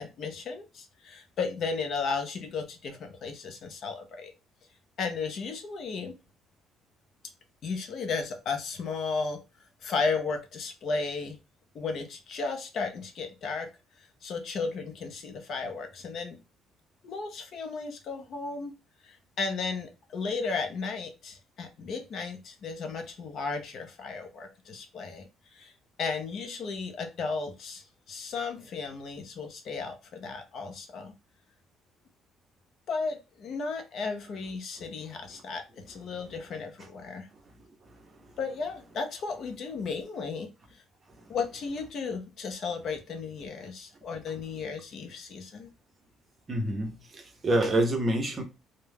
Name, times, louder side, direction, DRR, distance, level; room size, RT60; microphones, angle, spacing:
voice 1, 0.0-4.3 5.0-6.2 7.6-9.4 9.8-11.4 11.7-13.7 14.0-16.4 17.0-18.7 19.0-25.7 26.0-31.1 32.9-37.3 38.4-40.8 41.3-45.7, left 4 dB, 45° left, 0.5 m, -34 dB
voice 2, 46.5-48.4, right 1 dB, 25° right, 0.6 m, -27 dB
2.2 x 2.0 x 3.2 m
cardioid pair, 155°, 0 cm